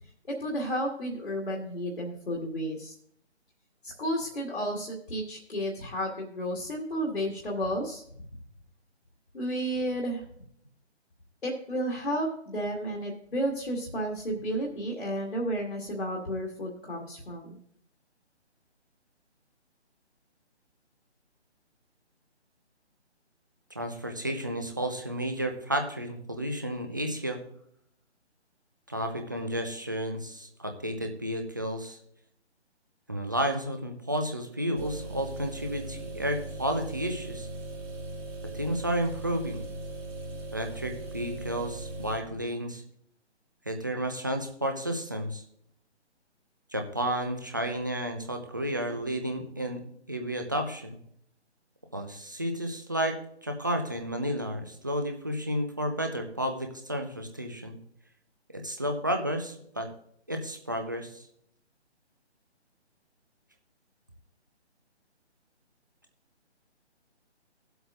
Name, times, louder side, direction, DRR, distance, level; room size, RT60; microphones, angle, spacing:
voice 1, 0.3-2.9 3.8-8.0 9.3-10.2 11.4-17.6, equal, 60° left, -2 dB, 1.9 m, -32 dB
voice 2, 23.7-27.4 28.9-32.0 33.1-37.5 38.5-39.6 40.5-42.8 43.7-45.4 46.7-49.8 50.1-51.0 51.9-57.8 58.5-59.9 60.3-61.2, equal, 20° right, 4 dB, 0.5 m, -32 dB
sound 1, 34.8-42.2, right 2 dB, 45° right, 2.6 m, -39 dB
18.0 x 7.9 x 2.5 m, 0.68 s
figure-of-eight pair, 145°, 35 cm